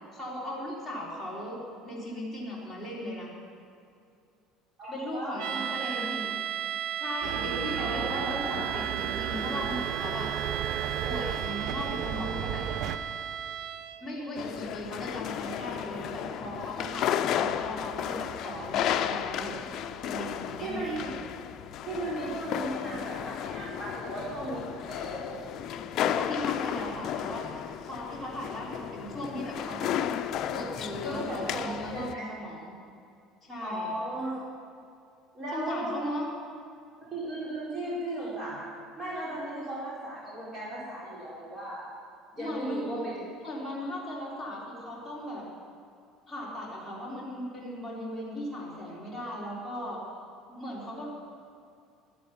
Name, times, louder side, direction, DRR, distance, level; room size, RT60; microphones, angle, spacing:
voice 1, 0.1-3.3 4.9-6.4 7.0-10.3 11.0-12.6 14.0-19.5 20.0-21.0 26.1-30.2 30.5-32.8 33.4-33.9 35.5-36.2 42.4-43.0 43.4-45.4 46.3-50.0 50.5-51.1, equal, ahead, -8 dB, 3.6 m, -37 dB
voice 2, 4.8-6.3 7.7-8.7 20.6-21.1 21.9-25.3 31.0-32.2 33.6-34.4 35.3-36.0 37.0-38.7 39.0-41.9 42.3-43.3, right 1 dB, 25° right, -7 dB, 4.2 m, -36 dB
sound 1, 5.4-14.1, right 10 dB, 80° right, 0.9 m, -35 dB
sound 2, 7.2-13.0, right 8 dB, 55° right, 0.8 m, -34 dB
sound 3, 14.4-32.1, left 10 dB, 50° left, 0.6 m, -33 dB
11.5 x 11.0 x 9.4 m, 2.5 s
cardioid pair, 150°, 0 cm